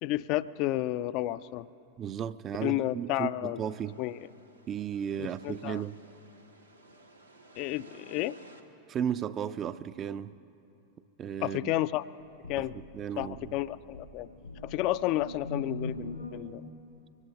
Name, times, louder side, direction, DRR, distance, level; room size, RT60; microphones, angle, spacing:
voice 1, 0.0-1.7 2.6-3.6 4.0-4.3 5.2-5.8 7.6-8.4 11.4-12.0 12.5-12.8 13.2-14.3 14.6-16.6, left 15 dB, 40° left, 0.3 m, -31 dB
voice 2, 2.0-4.0 4.7-6.0 8.9-10.3 11.2-11.7 12.6-13.5, right 9 dB, 30° right, 0.4 m, -35 dB
sound 1, 3.6-8.6, right 2 dB, 90° right, 1.3 m, -56 dB
sound 2, 12.2-16.4, left 1 dB, 85° left, 2.1 m, -42 dB
24.0 x 17.5 x 2.9 m
figure-of-eight pair, 90°, 0 cm